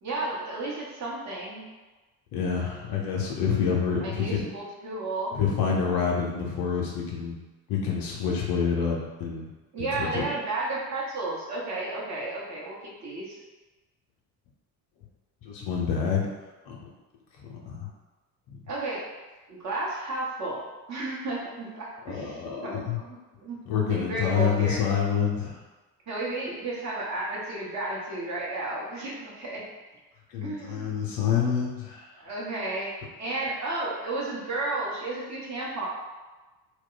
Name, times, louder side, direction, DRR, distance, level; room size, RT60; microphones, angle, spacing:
voice 1, 0.0-1.6 4.0-5.4 9.7-13.4 18.7-19.0 19.5-23.6 23.9-24.8 26.1-29.7 30.4-30.9 32.2-35.9, right 2 dB, 35° right, -5 dB, 0.9 m, -33 dB
voice 2, 2.3-4.4 5.3-7.4 7.7-9.4 10.0-10.3 15.4-16.3 16.7-16.8 17.4-17.9 18.5-18.6 22.1-23.0 23.7-25.6 30.3-32.1, left 7 dB, 50° left, -2 dB, 0.6 m, -27 dB
2.2 x 2.2 x 3.8 m, 1.2 s
figure-of-eight pair, 50°, 47 cm